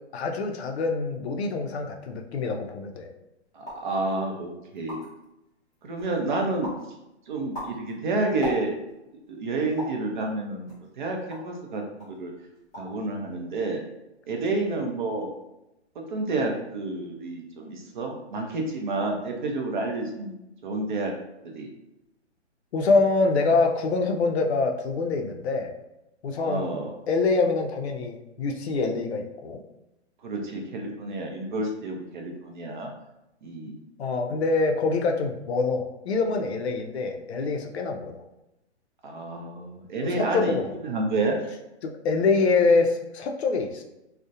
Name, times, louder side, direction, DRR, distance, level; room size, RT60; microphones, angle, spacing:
voice 1, 0.1-3.1 22.7-25.7 26.2-26.7 27.1-29.6 34.0-38.2 40.2-40.7 41.8-43.8, left 3 dB, 65° left, 3 dB, 0.5 m, -25 dB
voice 2, 3.5-5.0 5.8-6.7 7.3-8.7 9.3-12.3 12.8-13.8 14.3-15.3 16.1-20.3 20.6-21.1 21.4-21.7 26.4-26.9 30.2-32.9 33.4-33.8 39.0-41.4, right 2 dB, 45° right, 2 dB, 0.5 m, -29 dB
sound 1, 3.6-3.9 4.4-4.5 4.7-5.2 5.7-6.2 6.6-6.9 7.3-9.0 9.8-10.1 10.7-11.6 12.0-12.2 12.5-13.0 13.3-13.8, equal, 10° left, 0.6 m, -39 dB
2.3 x 2.1 x 2.7 m, 0.91 s
hypercardioid pair, 140°, 35 cm